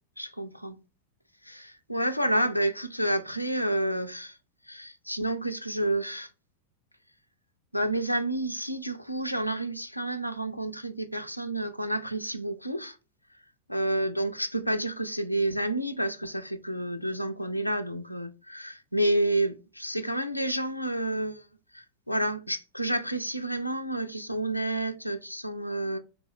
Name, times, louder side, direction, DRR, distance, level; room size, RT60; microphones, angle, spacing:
voice 1, 0.2-0.8 1.4-4.4 4.7-6.3 7.7-13.0 13.7-21.5 21.7-26.0, right 1 dB, 90° left, 0.4 m, -30 dB
3.6 x 2.2 x 3.2 m
figure-of-eight pair, 90°, 0 cm